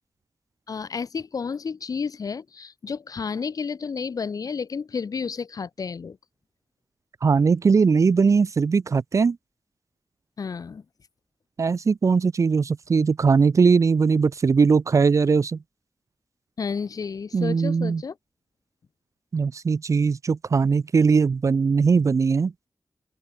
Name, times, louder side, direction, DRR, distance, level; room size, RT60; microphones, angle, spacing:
voice 1, 0.7-6.2 10.4-10.8 16.6-18.2, left 5 dB, 70° left, 5.3 m, -31 dB
voice 2, 7.2-9.4 11.6-15.6 17.3-18.0 19.3-22.5, right 5 dB, 55° right, 0.8 m, -20 dB
open air
wide cardioid pair, 120°, 6 cm